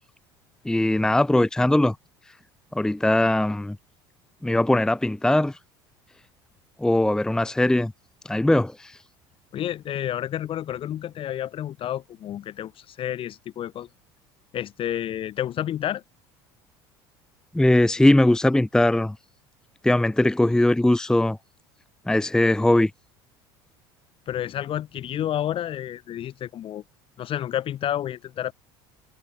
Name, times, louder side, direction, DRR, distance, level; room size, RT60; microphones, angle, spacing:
voice 1, 0.6-2.0 2.7-3.8 4.4-5.6 6.8-7.9 8.2-9.0 17.5-19.2 19.8-21.4 22.1-22.9, left 1 dB, 5° left, 0.8 m, -20 dB
voice 2, 9.5-13.9 14.5-16.0 24.3-26.8 27.2-28.5, left 11 dB, 50° left, 4.1 m, -30 dB
supercardioid pair, 85°, 12 cm